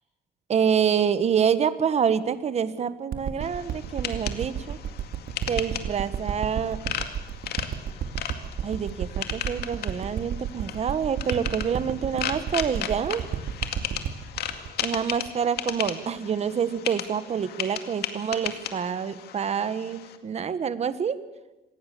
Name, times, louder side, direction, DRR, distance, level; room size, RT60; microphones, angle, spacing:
voice 1, 0.5-4.8 5.5-6.8 8.6-13.2 14.8-21.2, right 7 dB, 40° right, 13 dB, 1.4 m, -27 dB
sound 1, 3.1-15.9 16.5-16.6, right 8 dB, 60° right, 2.2 m, -32 dB
sound 2, 3.4-20.2, left 9 dB, 70° left, 2.2 m, -36 dB
25.5 x 19.0 x 6.9 m, 1.1 s
cardioid pair, 110°, 17 cm